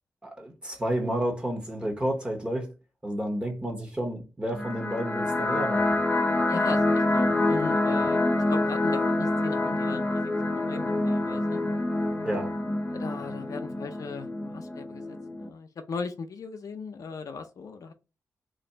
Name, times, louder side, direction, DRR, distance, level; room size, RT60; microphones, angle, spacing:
voice 1, 0.2-2.7 3.0-6.0 7.9-8.0 12.2-12.5, right 1 dB, 15° right, 1.1 m, -31 dB
sound 1, 4.5-15.5, left 2 dB, 20° left, 0.7 m, -26 dB
voice 2, 6.5-8.2 8.5-10.3 10.5-11.6 12.9-17.9, left 5 dB, 65° left, 0.6 m, -38 dB
3.1 x 2.6 x 4.3 m
wide cardioid pair, 100°, 6 cm